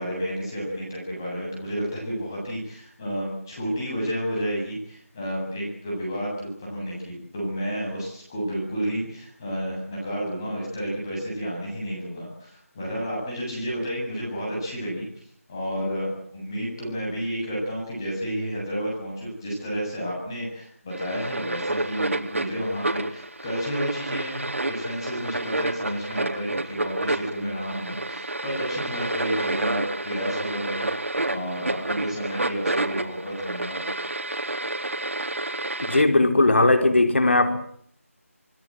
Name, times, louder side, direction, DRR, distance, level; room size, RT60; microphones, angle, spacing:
voice 1, 0.0-15.1 15.5-33.8, equal, 15° left, -2 dB, 7.8 m, -31 dB
sound 1, 20.9-36.0, right 2 dB, 60° right, 3.9 m, -30 dB
voice 2, 35.8-37.6, left 2 dB, 50° left, 8 dB, 4.7 m, -18 dB
27.5 x 20.5 x 7.8 m, 0.65 s
figure-of-eight pair, 175°, 8 cm